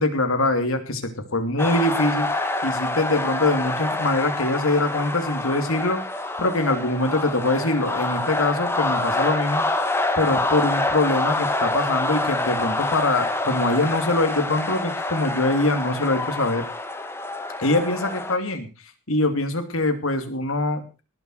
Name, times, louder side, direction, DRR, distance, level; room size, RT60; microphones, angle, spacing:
voice 1, 0.0-2.3 2.6-6.0 6.4-9.7 10.2-16.7 17.6-18.7 19.1-20.8, left 2 dB, 80° left, 7 dB, 2.8 m, -23 dB
sound 1, 1.6-18.4, left 2 dB, 10° left, 1.5 m, -26 dB
19.0 x 7.2 x 6.5 m, 0.33 s
head